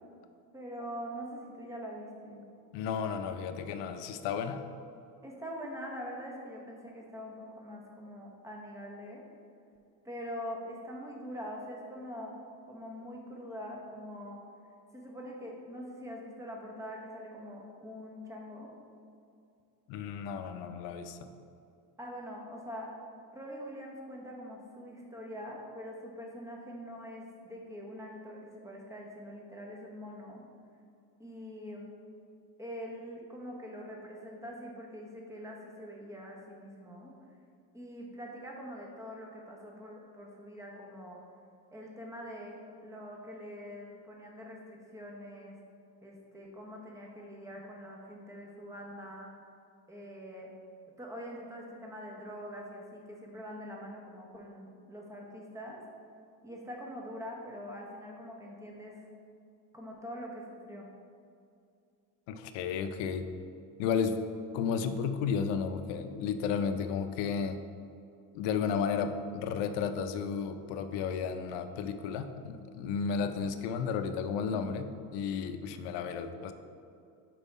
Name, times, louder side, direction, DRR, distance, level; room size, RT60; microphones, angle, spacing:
voice 1, 0.5-2.4 5.2-9.2 10.0-12.4 12.7-14.4 14.9-18.7 22.0-22.9 23.3-30.4 31.2-31.9 32.6-37.1 37.7-41.2 41.7-45.6 46.0-49.3 49.9-50.5 50.9-55.8 56.4-59.0 59.7-60.9, equal, 5° right, -1 dB, 0.8 m, -44 dB
voice 2, 2.7-4.6 19.9-21.2 62.3-63.3 63.8-64.2 64.5-67.6 68.3-76.5, left 6 dB, 70° left, 8 dB, 0.6 m, -33 dB
5.4 x 4.6 x 4.1 m, 2.5 s
cardioid pair, 130°, 45 cm